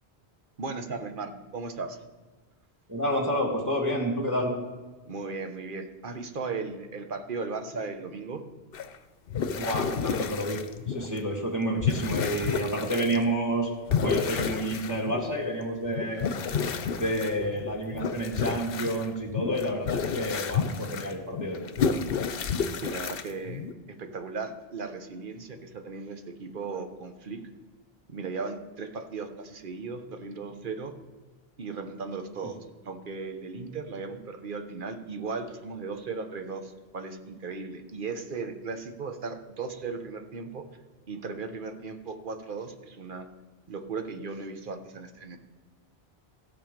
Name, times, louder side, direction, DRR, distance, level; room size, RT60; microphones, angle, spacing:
voice 1, 0.6-2.0 5.0-8.4 22.3-27.4 28.1-30.9 31.6-32.6 32.8-40.7 41.1-43.3 43.7-45.4, right 4 dB, 55° right, 7 dB, 1.1 m, -37 dB
voice 2, 2.9-4.5 9.5-10.6 10.9-13.7 14.0-16.2 17.0-21.6, right 1 dB, 15° right, -1 dB, 1.6 m, -29 dB
sound 1, 8.7-8.9 9.3-11.3 11.5-13.2 13.9-15.4 15.8-23.7, left 6 dB, 65° left, 0.8 m, -30 dB
16.0 x 7.2 x 5.1 m, 1.3 s
omnidirectional pair, 1.1 m